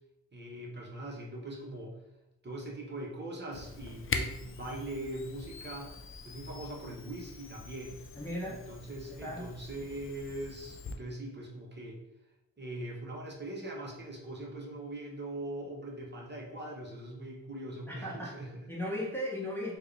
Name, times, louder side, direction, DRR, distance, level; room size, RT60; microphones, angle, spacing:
voice 1, 0.3-1.9 2.4-6.0 6.2-8.0 8.5-12.0 12.6-18.6, right 1 dB, 30° right, -2 dB, 0.9 m, -41 dB
Camera, 3.5-11.0, left 4 dB, 35° left, 0.4 m, -42 dB
voice 2, 8.1-8.6 9.1-9.5 17.9-18.4 18.7-19.8, left 1 dB, 5° left, -5 dB, 1.0 m, -36 dB
4.5 x 2.3 x 3.2 m, 0.91 s
cardioid pair, 70°, 35 cm